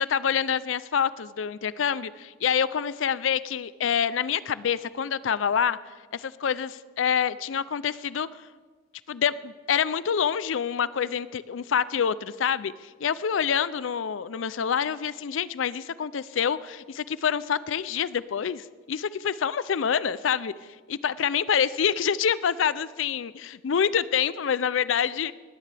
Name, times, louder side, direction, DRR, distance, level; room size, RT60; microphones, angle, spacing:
voice 1, 0.0-5.8 6.1-8.3 9.1-20.5 20.9-25.3, left 7 dB, 90° left, 17 dB, 0.5 m, -26 dB
20.5 x 17.0 x 3.4 m, 1.4 s
head